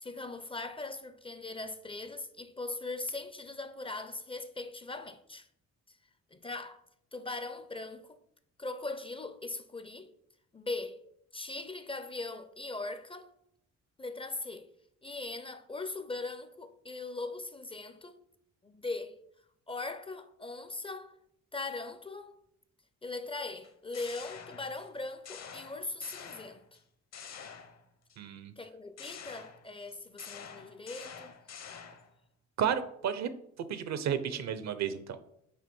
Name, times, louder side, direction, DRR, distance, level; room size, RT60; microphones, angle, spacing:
voice 1, 0.0-5.5 6.3-6.8 7.1-8.2 8.6-10.1 10.5-11.0 11.3-13.3 14.0-14.7 15.0-18.2 18.6-19.2 19.7-21.2 21.5-22.4 23.0-26.6 28.6-31.4, left 3 dB, 20° left, 0.5 m, -40 dB
sound 1, 23.6-24.9 25.2-26.8 27.1-28.2 29.0-32.1, left 7 dB, 60° left, 0.9 m, -47 dB
voice 2, 28.2-28.5 32.6-33.3 33.7-35.2, right 8 dB, 65° right, 0.7 m, -32 dB
5.6 x 3.7 x 5.2 m
cardioid pair, 90°, 30 cm